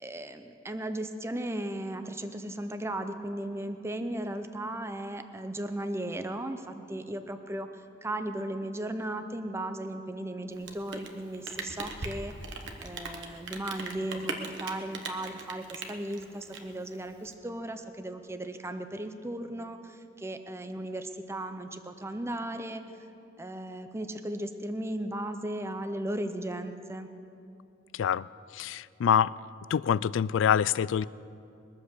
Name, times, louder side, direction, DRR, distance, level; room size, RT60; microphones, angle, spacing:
voice 1, 0.0-12.3 12.8-22.8 23.4-27.1, right 1 dB, 15° right, 8 dB, 0.6 m, -36 dB
Rain, 10.5-17.3, right 3 dB, 65° right, 1.3 m, -40 dB
voice 2, 27.9-28.3 28.5-29.3 29.7-31.1, left 8 dB, 75° left, 21 dB, 0.3 m, -25 dB
21.5 x 8.2 x 6.7 m, 2.6 s
head